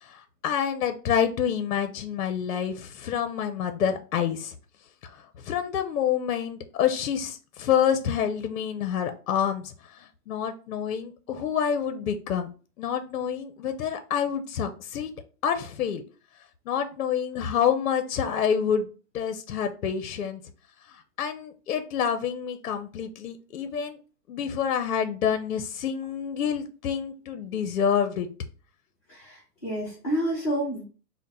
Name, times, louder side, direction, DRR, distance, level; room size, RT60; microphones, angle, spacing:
voice 1, 0.0-4.5 5.1-12.5 12.8-15.1 15.4-16.0 16.7-18.9 19.1-20.4 21.2-24.0 24.3-28.3, left 8 dB, 60° left, 8 dB, 0.6 m, -27 dB
voice 2, 29.1-30.8, right 1 dB, 10° left, -4 dB, 0.6 m, -29 dB
3.7 x 2.1 x 4.0 m, 0.37 s
hypercardioid pair, 170°, 47 cm